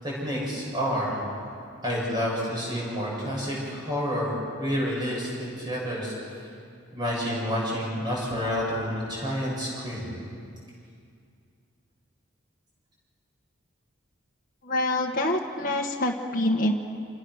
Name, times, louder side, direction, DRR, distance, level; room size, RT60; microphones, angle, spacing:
voice 1, 0.0-1.2 1.8-6.1 6.9-10.1, equal, 20° right, -5 dB, 7.9 m, -29 dB
voice 2, 14.6-16.7, left 1 dB, 40° left, 0 dB, 1.5 m, -26 dB
29.5 x 28.0 x 6.5 m, 2.4 s
head